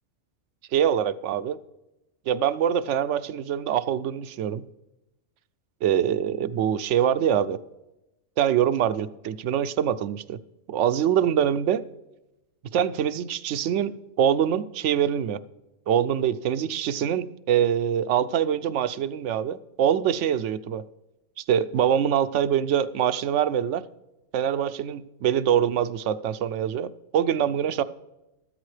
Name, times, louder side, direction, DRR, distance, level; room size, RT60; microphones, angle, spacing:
voice 1, 0.7-1.6 2.3-4.6 5.8-7.6 8.4-10.4 10.7-11.8 12.7-15.4 15.9-20.8 21.4-23.8 24.3-27.8, right 9 dB, 80° right, 14 dB, 0.9 m, -24 dB
14.0 x 13.0 x 3.2 m, 0.96 s
omnidirectional pair, 1.2 m